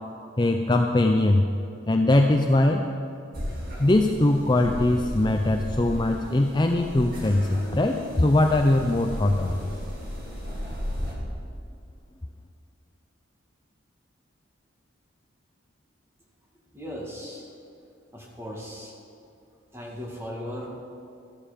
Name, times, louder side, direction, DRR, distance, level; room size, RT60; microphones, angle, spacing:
voice 1, 0.4-1.5 1.9-2.8 3.8-9.7, left 1 dB, 20° left, 4 dB, 0.5 m, -21 dB
sound 1, 3.3-11.1, equal, 50° right, 2.7 m, -35 dB
voice 2, 16.7-17.5 18.1-19.0 19.7-20.7, equal, 15° right, -2 dB, 2.0 m, -37 dB
14.0 x 12.0 x 5.1 m, 2.6 s
head